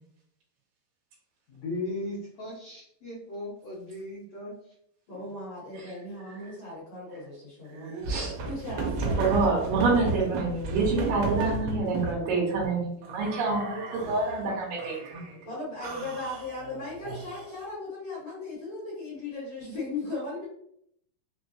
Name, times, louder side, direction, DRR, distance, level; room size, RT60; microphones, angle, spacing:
voice 1, 1.5-4.5 5.1-5.3, left 2 dB, 85° left, -8 dB, 1.4 m, -37 dB
voice 2, 5.1-7.9 8.4-9.5 15.5-20.4, left 2 dB, 55° left, -7 dB, 2.0 m, -37 dB
sound 1, 7.7-12.2 13.0-14.3 14.8-15.4 15.8-17.6, right 3 dB, 90° right, 2.8 m, -33 dB
voice 3, 8.0-8.4 9.2-15.3, right 3 dB, 70° right, -6 dB, 2.8 m, -27 dB
5.9 x 2.2 x 2.7 m, 0.71 s
omnidirectional pair, 4.4 m